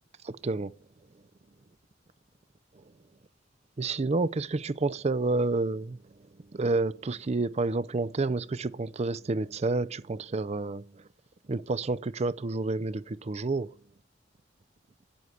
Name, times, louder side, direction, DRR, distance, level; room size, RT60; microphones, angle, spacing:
voice 1, 0.2-0.7 3.8-6.0 6.5-10.9 11.5-13.7, right 3 dB, 35° right, 0.5 m, -29 dB
9.2 x 8.0 x 8.4 m
head